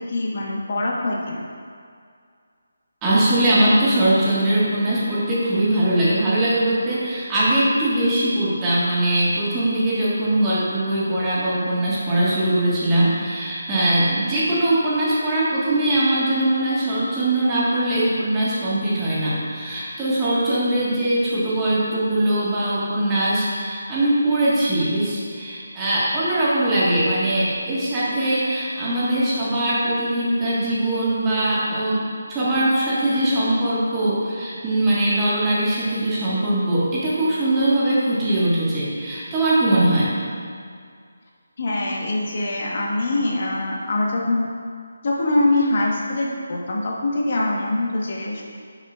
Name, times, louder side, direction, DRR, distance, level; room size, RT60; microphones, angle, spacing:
voice 1, 0.1-1.4 41.6-44.5 45.0-48.4, left 2 dB, 45° left, -2 dB, 1.2 m, -23 dB
voice 2, 3.0-32.0 32.3-40.1, right 1 dB, 15° right, -9 dB, 1.5 m, -21 dB
10.0 x 5.8 x 2.4 m, 2.2 s
figure-of-eight pair, 155°, 0 cm